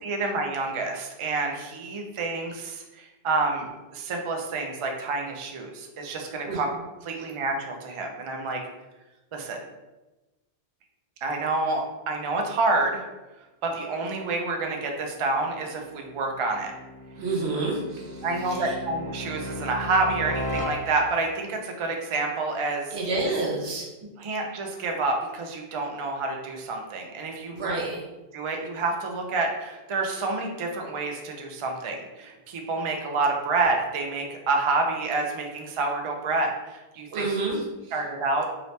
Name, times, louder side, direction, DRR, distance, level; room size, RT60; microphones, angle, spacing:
voice 1, 0.0-6.7 7.0-8.6 9.3-9.6 11.2-13.0 13.6-16.7 18.2-22.9 24.2-27.7 28.3-37.3 37.9-38.5, right 3 dB, 50° right, 2 dB, 0.4 m, -28 dB
sound 1, 14.9-21.4, equal, 10° left, 0.6 m, -36 dB
voice 2, 17.2-18.7 22.9-23.9 27.5-28.0 37.1-37.6, right 3 dB, 90° right, -1 dB, 1.1 m, -29 dB
2.8 x 2.8 x 3.2 m, 1.1 s
omnidirectional pair, 1.0 m